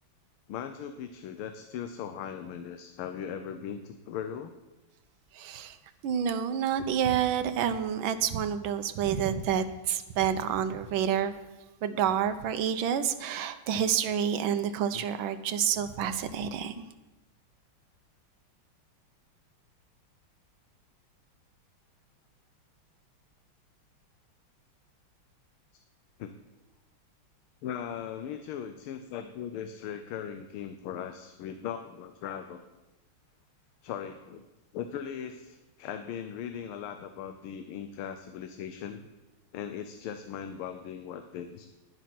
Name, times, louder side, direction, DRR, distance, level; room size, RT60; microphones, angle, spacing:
voice 1, 0.5-4.5 9.2-9.4 11.9-12.0 14.9-15.0 26.2-26.3 27.6-32.7 33.8-34.4 34.7-39.1 39.5-41.7, left 8 dB, 85° left, 8 dB, 1.6 m, -39 dB
voice 2, 5.3-5.8 6.0-11.3 11.8-16.8, right 8 dB, 75° right, 9 dB, 1.5 m, -28 dB
10.5 x 10.0 x 6.0 m, 1.0 s
omnidirectional pair, 2.3 m